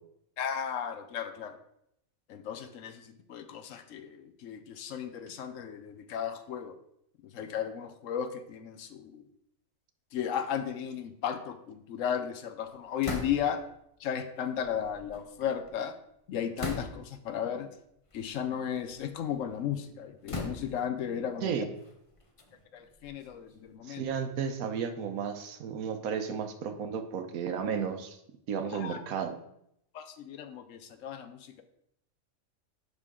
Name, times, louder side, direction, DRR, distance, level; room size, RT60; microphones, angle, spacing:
voice 1, 0.4-1.6 2.3-6.7 7.3-9.3 10.1-13.6 14.0-15.9 16.3-17.7 18.1-21.7 22.7-24.1 28.7-29.0 29.9-31.6, left 8 dB, 70° left, 9 dB, 0.9 m, -35 dB
sound 1, 13.0-13.7 14.6-15.7 16.6-17.2 18.1-18.3 18.8-19.5 20.3-21.0 21.8-23.7, left 3 dB, 30° left, 0.7 m, -40 dB
voice 2, 23.8-28.2 28.5-29.4, right 7 dB, 80° right, 7 dB, 1.2 m, -33 dB
10.5 x 3.8 x 3.6 m, 0.76 s
omnidirectional pair, 1.5 m